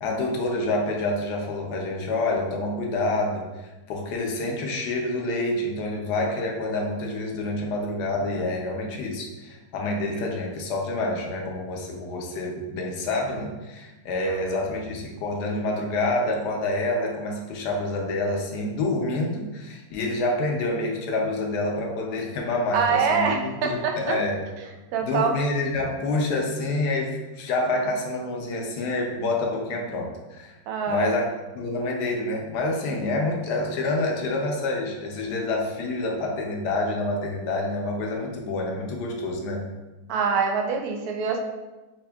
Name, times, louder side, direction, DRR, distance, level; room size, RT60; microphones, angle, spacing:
voice 1, 0.0-24.4 25.0-30.6 30.9-31.2 31.5-39.6, left 2 dB, 75° left, 0 dB, 1.1 m, -27 dB
voice 2, 14.2-14.6 22.7-24.2 24.9-25.3 30.7-31.1 40.1-41.4, right 5 dB, 70° right, 3 dB, 0.9 m, -25 dB
5.0 x 2.5 x 2.2 m, 1.1 s
omnidirectional pair, 1.9 m